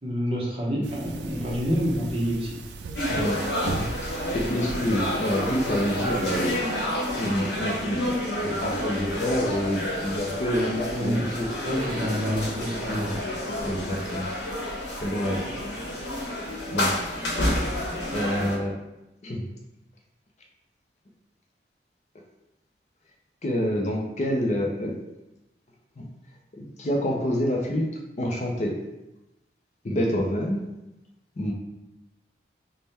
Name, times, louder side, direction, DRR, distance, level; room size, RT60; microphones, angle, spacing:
voice 1, 0.0-2.6 10.9-11.2 11.6-13.2, equal, 35° right, -3 dB, 0.7 m, -27 dB
sound 1, 0.8-6.6, right 3 dB, 80° right, 0.3 m, -38 dB
sound 2, 3.0-18.6, left 1 dB, 80° left, 0.9 m, -29 dB
voice 2, 3.1-6.7 7.2-11.5 13.6-14.3 15.0-15.6 16.1-16.3 16.7-16.9 18.1-18.8 19.2-19.5 23.4-25.0 26.0-26.1 26.5-27.9 28.2-28.8 29.8-30.6 31.4-31.5, equal, 40° left, 0 dB, 0.5 m, -27 dB
3.4 x 2.1 x 4.1 m, 0.95 s
head